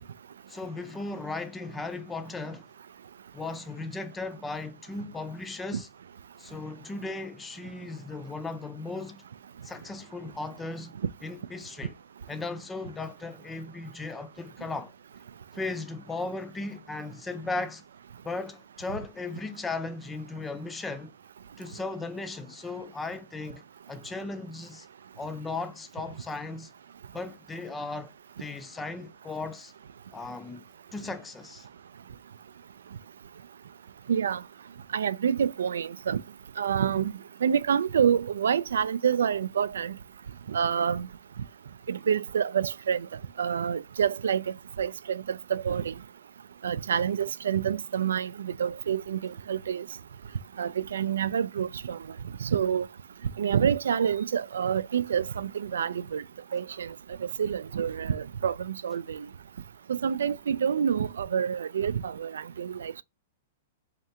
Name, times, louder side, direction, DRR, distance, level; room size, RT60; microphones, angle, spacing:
voice 1, 0.5-2.7 3.3-5.9 6.4-9.2 9.6-11.9 12.3-14.9 15.5-17.8 18.2-21.1 21.6-24.9 25.2-26.7 27.1-28.1 28.4-29.7 30.1-30.6 30.9-31.7, left 3 dB, 10° left, 0.5 m, -36 dB
voice 2, 34.1-34.4 34.9-36.2 36.6-37.1 37.4-40.0 40.5-41.1 41.9-43.1 43.4-44.4 44.8-46.0 46.6-49.8 50.6-52.0 52.4-52.9 53.4-56.2 56.5-56.9 57.4-59.3 59.9-63.0, right 8 dB, 90° right, 0.3 m, -27 dB
3.7 x 3.2 x 2.8 m
hypercardioid pair, 145°, 0 cm